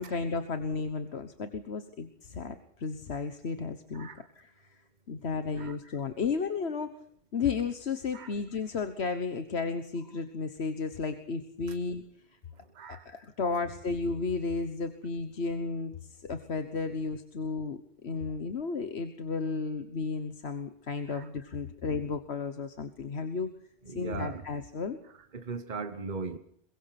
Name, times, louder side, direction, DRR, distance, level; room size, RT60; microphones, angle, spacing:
voice 1, 0.0-4.1 4.4-4.5 5.1-6.9 7.3-12.0 12.9-23.5 23.9-25.0, left 4 dB, 75° left, 1.5 m, -33 dB
voice 2, 3.9-4.3 5.6-5.8 8.1-8.3 12.5-13.1 21.1-21.3 23.8-24.5 25.3-26.4, right 4 dB, 45° right, 1.4 m, -39 dB
23.0 x 22.0 x 6.0 m
omnidirectional pair, 1.1 m